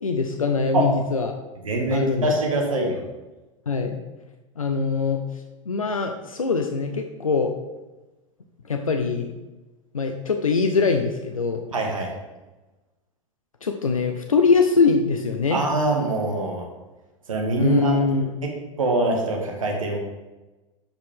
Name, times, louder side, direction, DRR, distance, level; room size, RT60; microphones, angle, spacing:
voice 1, 0.0-1.3 1.9-2.3 2.7-2.9 3.7-4.0 4.6-7.5 8.7-9.3 9.9-11.6 13.6-15.6 17.6-18.4, left 4 dB, 85° left, 5 dB, 0.6 m, -23 dB
voice 2, 1.6-3.0 11.7-12.1 15.5-16.7 17.3-18.0 18.8-20.0, right 2 dB, 80° right, 0 dB, 1.7 m, -24 dB
12.0 x 5.0 x 3.7 m, 1.1 s
figure-of-eight pair, 90°, 17 cm